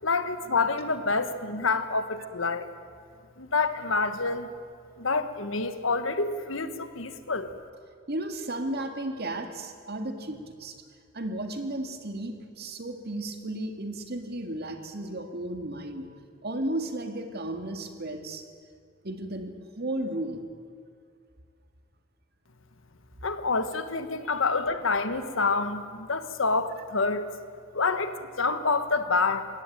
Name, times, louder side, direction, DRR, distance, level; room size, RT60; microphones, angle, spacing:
voice 1, 0.0-2.7 3.4-4.5 5.0-7.5 23.2-27.3 27.7-29.5, left 4 dB, 70° left, 10 dB, 1.4 m, -27 dB
voice 2, 8.1-10.8 11.1-16.1 16.4-18.4 19.0-20.4, right 1 dB, 50° right, 6 dB, 2.1 m, -34 dB
21.5 x 17.0 x 9.2 m, 2.2 s
head